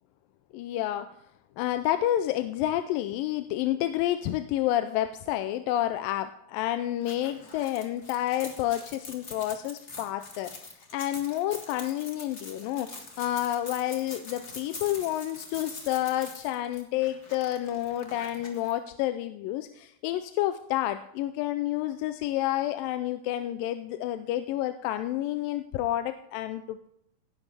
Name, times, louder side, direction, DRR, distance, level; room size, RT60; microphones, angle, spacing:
voice 1, 0.5-1.1 1.6-26.9, left 13 dB, 80° left, 9 dB, 2.2 m, -29 dB
sound 1, 7.0-18.7, left 3 dB, 35° left, 1.0 m, -44 dB
17.5 x 10.5 x 3.4 m, 0.73 s
omnidirectional pair, 4.1 m